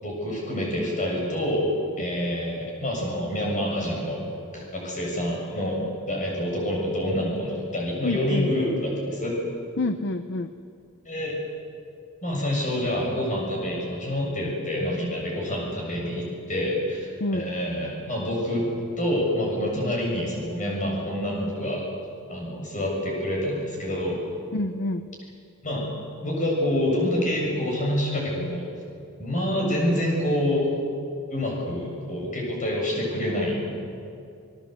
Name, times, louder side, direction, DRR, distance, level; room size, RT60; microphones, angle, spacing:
voice 1, 0.0-1.7 2.0-4.2 4.5-5.8 6.1-9.3 11.1-11.3 12.2-18.7 19.0-21.8 22.3-24.2 25.6-25.8 26.2-28.7 29.2-30.7 31.3-33.6, left 1 dB, 35° left, -1 dB, 7.4 m, -27 dB
voice 2, 8.0-8.5 9.8-10.5 17.2-17.5 24.5-25.1, left 2 dB, 55° left, 10 dB, 0.8 m, -27 dB
29.0 x 18.0 x 8.1 m, 2.5 s
head